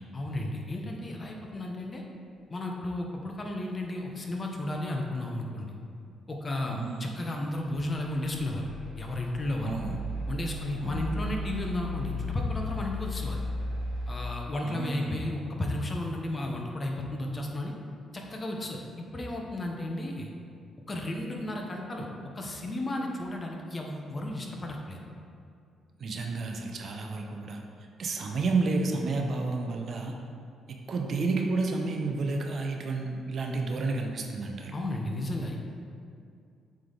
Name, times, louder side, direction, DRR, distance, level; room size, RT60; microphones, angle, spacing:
voice 1, 0.1-2.0 2.5-5.8 6.3-8.7 8.9-9.8 10.3-13.4 14.1-17.7 18.1-18.8 19.1-20.3 20.9-22.1 22.3-25.0 34.7-35.6, left 1 dB, 30° left, 1 dB, 0.9 m, -33 dB
voice 2, 6.7-7.1 9.6-10.0 10.8-11.1 14.6-15.2 26.0-27.6 28.0-30.2 30.7-34.7, right 3 dB, 55° right, 2 dB, 0.7 m, -31 dB
sound 1, 7.7-14.1, left 2 dB, 55° left, 1.4 m, -36 dB
7.7 x 3.5 x 3.9 m, 2.4 s
cardioid pair, 90°, 0 cm